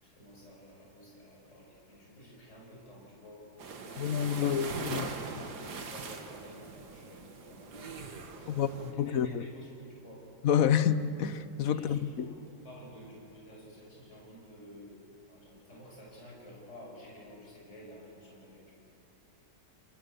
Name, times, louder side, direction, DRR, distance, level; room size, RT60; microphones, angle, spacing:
voice 1, 0.0-3.4 3.7-4.4 4.8-8.0 8.3-10.2 11.7-18.7, equal, 45° left, -3 dB, 6.8 m, -51 dB
sound 1, 3.6-8.9, right 4 dB, 75° right, 2.1 m, -42 dB
voice 2, 4.0-5.1 8.5-8.7 9.0-9.4 10.4-12.3, left 9 dB, 60° left, 13 dB, 1.1 m, -28 dB
30.0 x 20.5 x 6.9 m, 2.7 s
omnidirectional pair, 1.7 m